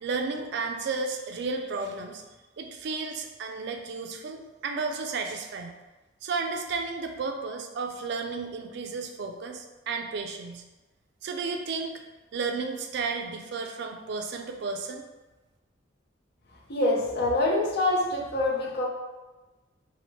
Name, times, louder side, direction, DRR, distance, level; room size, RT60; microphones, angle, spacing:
voice 1, 0.0-2.2 2.6-5.7 6.2-10.6 11.2-12.0 12.3-15.0, right 4 dB, 60° right, 4 dB, 0.3 m, -33 dB
voice 2, 16.7-18.8, left 2 dB, 55° left, -2 dB, 0.6 m, -25 dB
2.9 x 2.1 x 3.0 m, 1.1 s
head